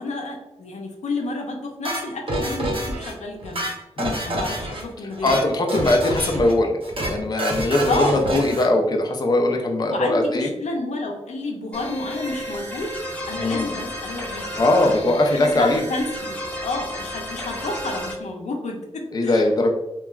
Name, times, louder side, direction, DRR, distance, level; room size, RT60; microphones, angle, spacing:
voice 1, 0.0-3.7 4.2-5.4 7.9-8.3 9.9-12.9 13.3-14.5 14.8-16.3 16.6-19.5, left 2 dB, 85° left, 1 dB, 0.5 m, -30 dB
sound 1, 1.8-3.1 3.4-4.8 5.1-5.4 5.7-6.5 6.8-7.1 7.4-8.7, right 1 dB, 50° right, 0.7 m, -27 dB
voice 2, 5.2-10.5 13.3-13.7 14.6-15.8 19.1-19.7, left 2 dB, 35° left, 2 dB, 0.4 m, -20 dB
sound 2, 11.7-18.1, equal, 10° left, 0.8 m, -32 dB
3.0 x 2.3 x 2.3 m, 0.99 s
wide cardioid pair, 75°, 12 cm